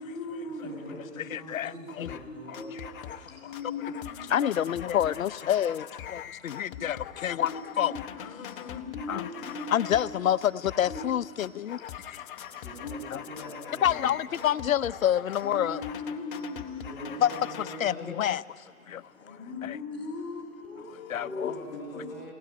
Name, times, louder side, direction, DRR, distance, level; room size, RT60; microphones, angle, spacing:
voice 1, 0.0-1.7 2.2-4.5 6.7-6.8 7.4-10.0 10.8-11.2 12.2-13.5 15.4-17.2 18.8-22.0, left 3 dB, 5° left, 7.8 m, -40 dB
voice 2, 0.6-2.6 6.3-6.5 12.5-14.4 16.8-18.2 21.1-22.3, right 1 dB, 20° right, 7.9 m, -44 dB
voice 3, 1.3-2.2 4.3-7.9 8.4-8.8 9.1-9.3 9.7-11.8 12.1-12.2 13.1-13.2 13.8-15.8 17.2-17.3 17.8-18.4 18.9-19.0 19.6-19.8 21.1-21.5, left 10 dB, 75° left, 0.7 m, -28 dB
sound 1, 2.1-2.3 2.5-3.3 3.5-10.1 10.4-11.1 11.4-17.8, left 9 dB, 40° left, 0.9 m, -42 dB
22.5 x 17.0 x 9.6 m
hypercardioid pair, 145°, 41 cm